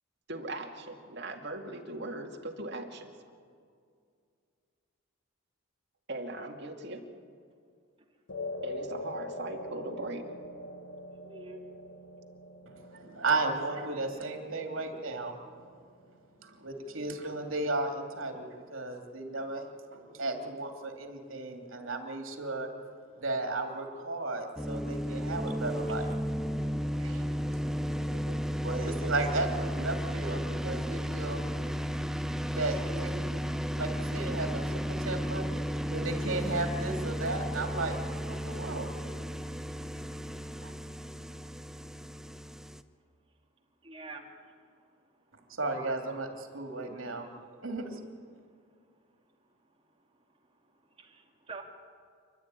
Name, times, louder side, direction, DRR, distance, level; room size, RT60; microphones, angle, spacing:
voice 1, 0.3-3.1 6.1-7.2 8.6-10.3, right 2 dB, 55° right, 2 dB, 2.5 m, -39 dB
sound 1, 8.3-16.8, left 2 dB, 70° left, 1.4 m, -43 dB
voice 2, 11.2-11.6 43.8-44.5 51.0-51.6, right 3 dB, 25° right, 1 dB, 2.5 m, -46 dB
voice 3, 12.7-15.3 16.4-22.7 23.2-26.1 26.4-26.6 27.0-27.3 27.9-31.4 32.5-33.3 33.8-35.5 35.9-38.0 38.3-38.9 40.6-40.7 45.5-47.3 47.6-48.0, right 2 dB, 75° right, 3 dB, 2.9 m, -34 dB
sound 2, 24.6-42.8, equal, ahead, 0.6 m, -34 dB
28.0 x 12.5 x 9.6 m, 2.2 s
head